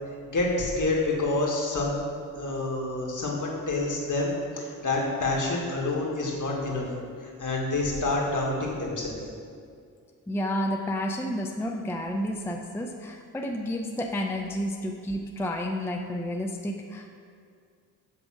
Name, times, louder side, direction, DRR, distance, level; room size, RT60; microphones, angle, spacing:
voice 1, 0.3-2.0 2.4-6.9 7.2-9.1, left 2 dB, 50° left, -2 dB, 1.7 m, -28 dB
voice 2, 10.3-17.1, equal, 5° left, 2 dB, 0.5 m, -31 dB
8.0 x 3.5 x 6.2 m, 2.2 s
cardioid pair, 60°, 38 cm